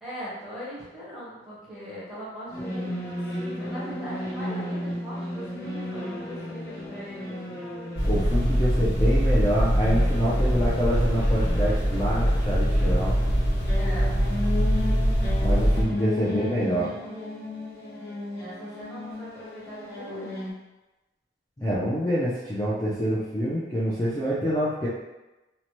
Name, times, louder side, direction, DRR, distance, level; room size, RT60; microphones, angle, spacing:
voice 1, 0.0-7.4 13.7-14.2 18.4-20.6, equal, ahead, -10 dB, 0.9 m, -40 dB
sound 1, 2.5-20.5, left 1 dB, 55° left, 0.8 m, -35 dB
sound 2, 8.0-15.8, equal, 80° left, 1.2 m, -23 dB
voice 2, 8.1-13.2 15.4-16.9 21.6-24.9, equal, 15° left, -10 dB, 0.4 m, -26 dB
2.8 x 2.1 x 3.0 m, 1.0 s
head